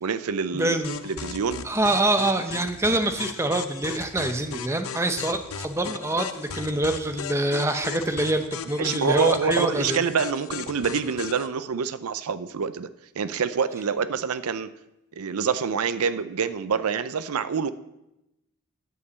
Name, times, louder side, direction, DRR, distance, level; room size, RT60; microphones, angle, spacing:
voice 1, 0.0-0.8 1.0-1.7 8.8-12.9 13.2-14.7 15.1-17.7, right 6 dB, 85° right, 0.5 m, -26 dB
voice 2, 0.5-1.1 1.6-10.0, right 1 dB, 10° right, 0.6 m, -25 dB
sound 1, 0.8-11.5, left 7 dB, 75° left, 0.6 m, -37 dB
9.8 x 5.4 x 8.0 m
head